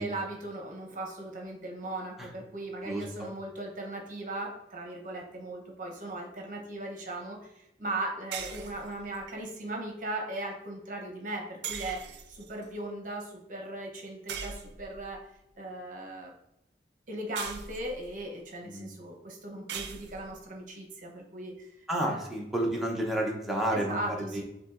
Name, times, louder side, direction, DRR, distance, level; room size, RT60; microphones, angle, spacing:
voice 1, 0.0-15.2 15.6-16.3 17.1-21.7 22.1-22.2 23.7-24.4, right 1 dB, 50° right, 0 dB, 0.8 m, -38 dB
voice 2, 2.8-3.3 18.6-18.9 21.9-24.0 24.3-24.4, right 1 dB, ahead, -2 dB, 0.7 m, -30 dB
sound 1, 8.3-9.3 11.6-12.7 14.3-15.1 17.4-18.2 19.7-20.4, right 7 dB, 70° right, 0.4 m, -40 dB
7.0 x 2.7 x 2.5 m, 0.85 s
head